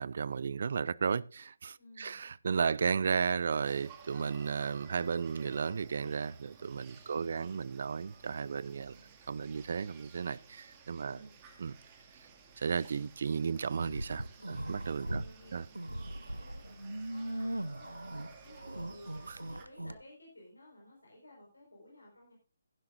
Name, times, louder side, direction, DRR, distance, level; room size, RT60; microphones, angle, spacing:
voice 1, 0.0-11.2 11.6-11.7 12.6-15.2 15.5-15.6 19.3-19.4, right 6 dB, 50° right, 0.4 m, -34 dB
voice 2, 1.8-2.2 7.1-7.6 11.0-11.3 14.3-14.6 15.0-19.1 19.5-22.3, left 1 dB, 85° left, 5.2 m, -56 dB
sound 1, 3.7-19.7, right 5 dB, 25° right, 2.2 m, -56 dB
sound 2, 13.7-15.3 15.7-19.9, right 1 dB, 90° right, 0.8 m, -39 dB
16.0 x 10.5 x 2.6 m
figure-of-eight pair, 145°, 0 cm